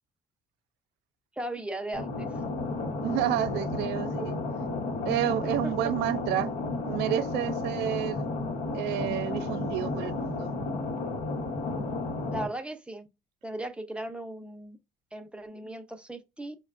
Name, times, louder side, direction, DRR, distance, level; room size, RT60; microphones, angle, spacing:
voice 1, 1.4-2.3 5.6-5.9 12.3-13.1 13.4-14.8 15.1-16.6, right 1 dB, 5° right, 0.5 m, -37 dB
sound 1, 1.9-12.4, left 3 dB, 85° left, 0.9 m, -32 dB
voice 2, 3.0-4.4 5.1-6.5 6.9-8.2 8.7-10.5, right 12 dB, 80° right, 0.4 m, -30 dB
5.0 x 2.2 x 2.4 m
cardioid pair, 110°, 17 cm